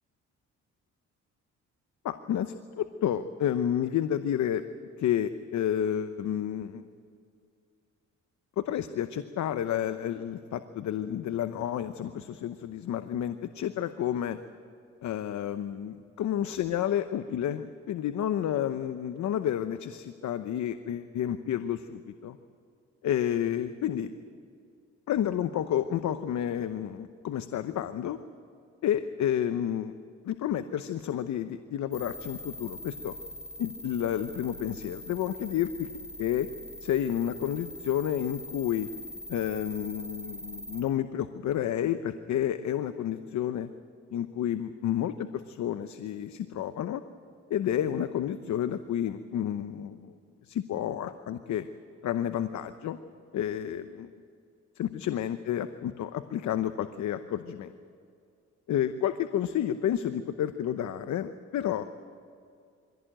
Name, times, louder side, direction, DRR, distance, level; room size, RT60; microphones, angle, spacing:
voice 1, 2.0-4.6 5.0-6.8 8.6-14.4 15.0-22.4 23.0-24.1 25.1-28.2 28.8-29.9 30.2-33.2 33.6-35.9 36.2-36.5 36.8-38.9 39.3-43.7 44.1-47.0 47.5-50.1 50.5-51.6 52.0-53.0 53.3-54.1 54.8-57.7 58.7-61.8, left 10 dB, 70° left, 10 dB, 0.9 m, -30 dB
sound 1, 31.9-40.8, left 1 dB, 5° right, 6.8 m, -43 dB
24.0 x 16.0 x 8.9 m, 2.4 s
cardioid pair, 90°, 30 cm